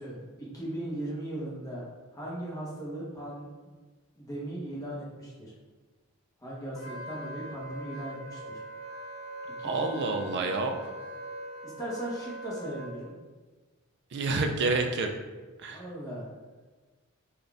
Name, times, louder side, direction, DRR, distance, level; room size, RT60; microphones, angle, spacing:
voice 1, 0.0-1.9 2.1-3.8 4.2-5.5 6.4-8.4 9.6-10.6 11.6-13.1 15.7-16.3, right 1 dB, 15° left, -6 dB, 1.0 m, -38 dB
Wind instrument woodwind instrument, 6.8-12.9, right 1 dB, 65° left, 0.8 m, -41 dB
voice 2, 9.6-10.9 14.1-15.1 15.6-15.9, right 3 dB, 55° right, 5 dB, 0.4 m, -28 dB
4.0 x 2.4 x 3.4 m, 1.3 s
head